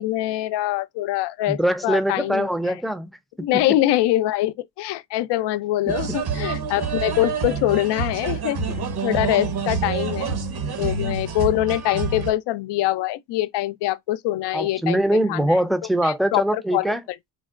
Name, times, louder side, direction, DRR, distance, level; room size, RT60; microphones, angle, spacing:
voice 1, 0.0-2.5 3.4-8.6 9.0-10.4 10.8-15.0 15.3-15.6 16.0-16.9, left 15 dB, 75° left, 0.5 m, -24 dB
voice 2, 1.5-3.7 5.9-6.2 14.5-17.0, right 1 dB, ahead, 0.5 m, -23 dB
sound 1, 5.9-12.3, right 5 dB, 60° right, 1.2 m, -27 dB
4.6 x 2.1 x 2.4 m
cardioid pair, 70°, 42 cm